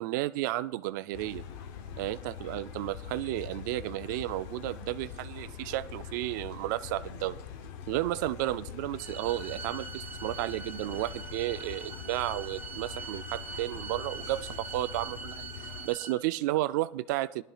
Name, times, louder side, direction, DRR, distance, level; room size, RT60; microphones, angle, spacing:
voice 1, 0.0-1.4 2.0-7.4 7.9-17.4, right 16 dB, 70° right, 0.4 m, -33 dB
sound 1, 1.1-15.9, left 7 dB, 60° left, 0.8 m, -43 dB
sound 2, 9.0-16.1, right 5 dB, 15° right, 2.0 m, -43 dB
20.5 x 11.5 x 2.4 m
supercardioid pair, 155°, 10 cm